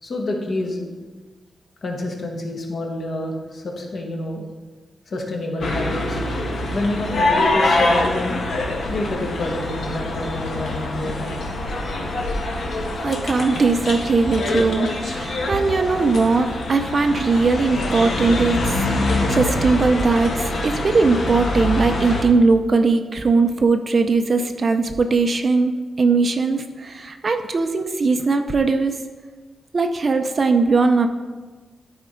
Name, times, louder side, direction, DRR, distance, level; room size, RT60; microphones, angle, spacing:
voice 1, 0.0-0.9 1.8-4.4 5.1-6.2 6.7-8.4 8.9-11.4, left 1 dB, 50° left, 1 dB, 1.5 m, -28 dB
sound 1, 5.6-22.2, left 2 dB, 65° left, 1.6 m, -24 dB
voice 2, 12.8-29.0 29.7-31.1, right 4 dB, 35° right, 7 dB, 0.5 m, -19 dB
13.0 x 4.4 x 5.0 m, 1.3 s
wide cardioid pair, 165°, 0 cm